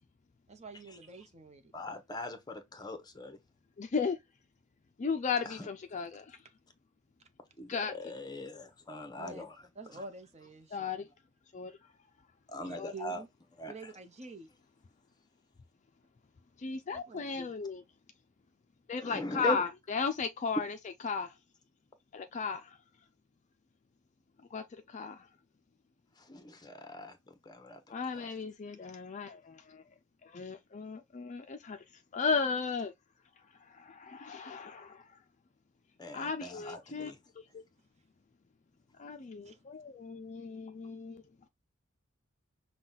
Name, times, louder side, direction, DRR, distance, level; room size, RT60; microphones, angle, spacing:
voice 1, 0.5-1.7 9.2-9.4 9.8-11.0 12.6-13.3 13.7-14.5 16.9-17.4 39.4-39.6, right 3 dB, 35° right, 0.8 m, -48 dB
voice 2, 1.7-3.4 5.4-5.7 7.6-9.5 9.9-10.0 12.5-13.2 13.6-13.7 19.0-19.6 26.2-27.8 28.1-28.3 36.0-37.2, left 2 dB, 20° left, 0.9 m, -40 dB
voice 3, 3.8-4.2 5.0-6.4 7.7-7.9 10.7-11.0 11.5-11.7 12.7-12.9 16.6-17.8 18.9-20.7 21.0-21.3 22.1-22.8 24.5-25.3 27.9-29.8 30.2-31.8 32.1-32.9 33.7-35.0 36.1-37.1 37.5-37.6 39.0-41.2, left 5 dB, 35° left, 0.4 m, -35 dB
5.7 x 2.3 x 3.9 m
head